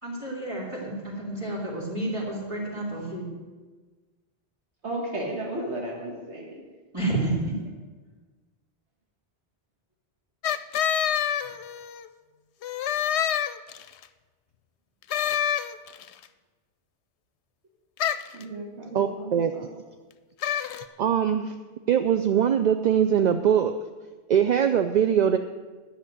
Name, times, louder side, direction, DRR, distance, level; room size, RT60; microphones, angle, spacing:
voice 1, 0.0-3.3 6.9-7.5, right 2 dB, 25° right, -7 dB, 3.2 m, -30 dB
voice 2, 4.8-6.6 18.3-19.7, right 1 dB, 90° right, -2 dB, 1.9 m, -34 dB
sound 1, 10.4-12.1 12.6-14.0 15.1-16.1 18.0-18.4 20.4-20.9, left 9 dB, 85° left, 0.9 m, -27 dB
voice 3, 18.9-19.5 21.0-21.5 21.9-23.7 24.3-25.4, right 8 dB, 55° right, 8 dB, 0.5 m, -22 dB
10.0 x 6.6 x 9.0 m, 1.3 s
omnidirectional pair, 1.1 m